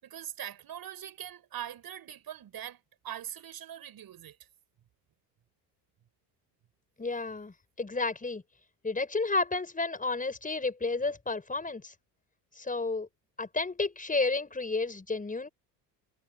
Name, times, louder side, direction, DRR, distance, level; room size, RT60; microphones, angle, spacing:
voice 1, 0.0-4.4, right 11 dB, 50° right, 6.6 m, -42 dB
voice 2, 7.0-8.4 8.8-11.9 12.6-13.1 13.4-15.5, left 3 dB, 15° left, 5.8 m, -31 dB
supercardioid pair, 90°, 48 cm